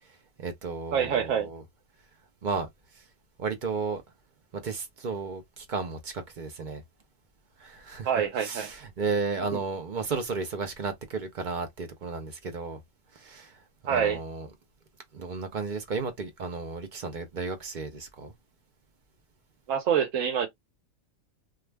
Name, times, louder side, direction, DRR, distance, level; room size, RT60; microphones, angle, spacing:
voice 1, 0.4-1.6 2.4-2.7 3.4-4.0 4.6-6.8 7.6-8.1 8.4-12.8 13.1-13.6 13.9-14.5 15.1-18.3, right 4 dB, 50° right, 0.6 m, -33 dB
voice 2, 0.9-1.5 8.0-8.7 9.5-9.6 13.9-14.2 19.7-20.5, right 8 dB, 85° right, 1.1 m, -26 dB
2.3 x 2.3 x 3.2 m
omnidirectional pair, 1.3 m